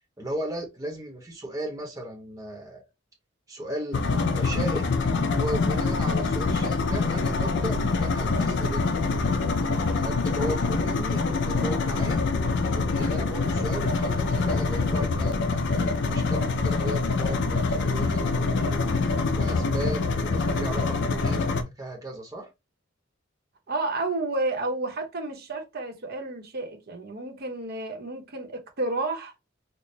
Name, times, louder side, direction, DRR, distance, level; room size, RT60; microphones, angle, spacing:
voice 1, 0.2-2.8 3.5-4.0 4.3-4.9 5.3-12.2 12.7-18.9 19.3-22.5, right 1 dB, 15° right, 0.8 m, -36 dB
sound 1, 3.9-21.6, left 3 dB, 60° left, 0.5 m, -25 dB
voice 2, 23.7-29.3, right 2 dB, 50° right, 0.8 m, -31 dB
4.2 x 2.0 x 3.2 m
head